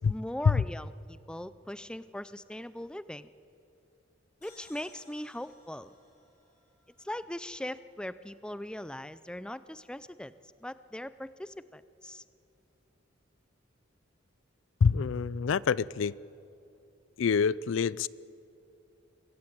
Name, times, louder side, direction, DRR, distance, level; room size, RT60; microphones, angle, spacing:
voice 1, 0.1-3.3 4.4-5.9 7.0-10.3 10.6-12.2, left 1 dB, 5° left, 15 dB, 0.4 m, -40 dB
sound 1, 4.4-8.0, left 2 dB, 40° left, 5.0 m, -60 dB
voice 2, 14.8-16.1 17.2-18.1, left 5 dB, 70° left, 21 dB, 0.4 m, -26 dB
23.0 x 15.5 x 8.7 m, 2.7 s
head